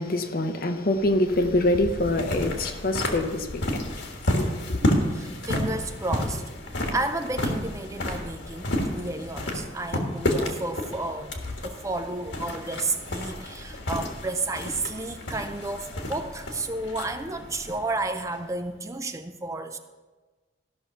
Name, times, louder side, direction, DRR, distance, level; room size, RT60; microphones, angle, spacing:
voice 1, 0.0-3.8 4.3-4.8, left 1 dB, 50° left, 0.8 m, -25 dB
sound 1, 0.9-18.6, left 1 dB, 85° left, 1.6 m, -31 dB
voice 2, 5.1-6.4 6.7-19.8, right 2 dB, 15° right, 0.5 m, -32 dB
14.0 x 5.9 x 5.7 m
head